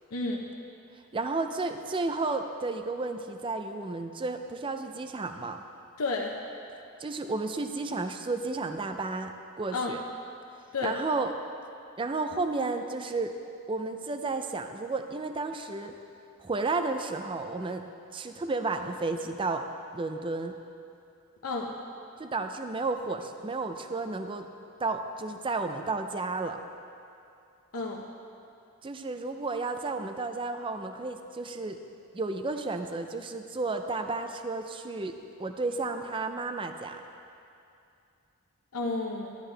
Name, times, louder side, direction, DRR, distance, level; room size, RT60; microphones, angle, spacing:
voice 1, 0.1-0.5 6.0-6.3 9.7-10.0 10.7-11.0 21.4-21.7 27.7-28.0 38.7-39.4, left 3 dB, 80° left, -2 dB, 0.8 m, -31 dB
voice 2, 1.1-5.6 7.0-10.0 10.8-11.3 12.0-13.3 13.7-15.9 16.4-17.9 18.1-19.7 19.9-20.6 22.2-24.5 24.8-26.6 28.8-31.8 32.1-35.1 35.4-37.0, right 3 dB, 25° right, 7 dB, 0.4 m, -32 dB
14.0 x 10.5 x 3.3 m, 2.6 s
head